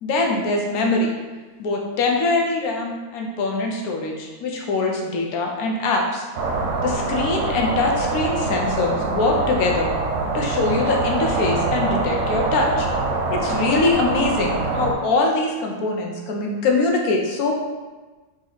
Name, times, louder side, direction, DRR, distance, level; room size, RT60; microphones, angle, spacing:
voice 1, 0.0-1.1 1.6-6.3 6.8-9.9 10.3-12.9 13.3-17.5, left 3 dB, 75° left, 0 dB, 1.2 m, -23 dB
sound 1, 6.4-14.9, right 3 dB, 60° right, 0.9 m, -24 dB
4.1 x 3.1 x 3.9 m, 1.3 s
omnidirectional pair, 1.6 m